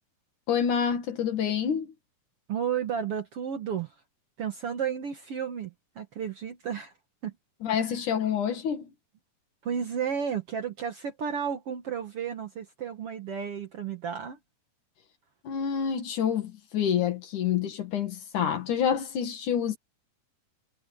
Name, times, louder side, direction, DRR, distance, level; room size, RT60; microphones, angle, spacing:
voice 1, 0.5-1.9 7.6-8.9 15.4-19.8, left 8 dB, 65° left, 3.3 m, -27 dB
voice 2, 2.5-4.0 4.4-6.9 7.2-7.3 7.8-7.9 9.6-14.4, right 7 dB, 55° right, 1.8 m, -32 dB
omnidirectional pair, 4.0 m